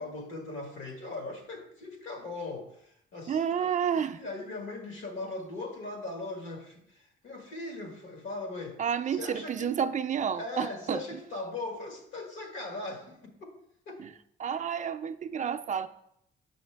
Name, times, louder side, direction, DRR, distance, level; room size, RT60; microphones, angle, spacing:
voice 1, 0.0-8.8 9.1-9.9 10.3-13.5 13.9-14.0, left 2 dB, 80° left, 3 dB, 1.5 m, -39 dB
voice 2, 3.3-4.2 8.8-11.0 14.0-14.1 14.4-15.9, right 8 dB, 40° right, 8 dB, 0.4 m, -30 dB
6.3 x 5.7 x 3.4 m, 0.74 s
cardioid pair, 90°, 20 cm